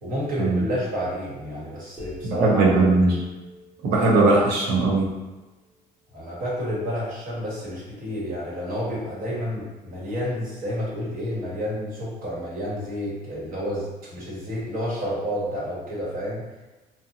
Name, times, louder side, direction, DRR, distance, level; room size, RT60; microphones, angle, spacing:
voice 1, 0.0-2.9 6.1-16.4, equal, 55° right, -6 dB, 1.2 m, -30 dB
sound 1, 2.0-5.5, left 1 dB, 10° right, 0.5 m, -44 dB
voice 2, 2.2-3.1 3.8-5.1, right 3 dB, 85° right, -4 dB, 0.8 m, -19 dB
2.8 x 2.3 x 2.5 m, 1.1 s
cardioid pair, 110°, 17 cm